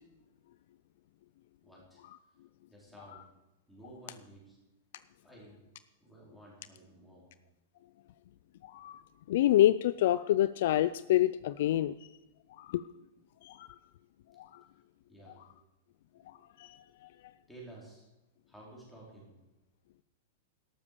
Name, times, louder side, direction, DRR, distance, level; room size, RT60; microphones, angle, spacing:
voice 1, 1.6-2.0 2.7-3.3 3.7-4.6 5.2-5.7 6.0-7.3 15.1-15.6 17.5-18.1 18.5-19.4, right 2 dB, ahead, -5 dB, 4.3 m, -53 dB
voice 2, 8.6-9.0 9.3-11.9 12.6-12.8 13.4-13.7 14.4-14.6 16.6-16.8, left 13 dB, 50° left, 15 dB, 0.4 m, -27 dB
12.5 x 12.5 x 6.8 m, 1.0 s
supercardioid pair, 175°, 0 cm